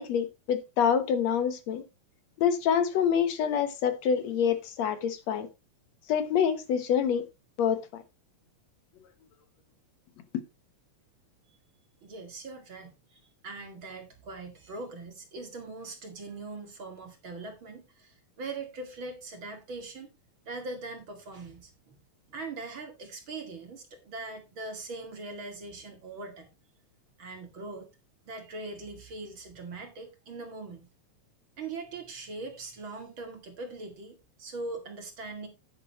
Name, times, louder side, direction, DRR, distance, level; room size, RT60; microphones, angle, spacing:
voice 1, 0.0-1.8 2.4-5.5 6.1-7.2 7.6-8.0, left 8 dB, 70° left, 2.2 m, -26 dB
voice 2, 12.0-20.1 20.5-22.0 22.3-26.5 27.2-27.9 28.2-30.9 31.6-35.5, right 3 dB, 45° right, 2.7 m, -41 dB
10.5 x 9.9 x 3.0 m
omnidirectional pair, 3.3 m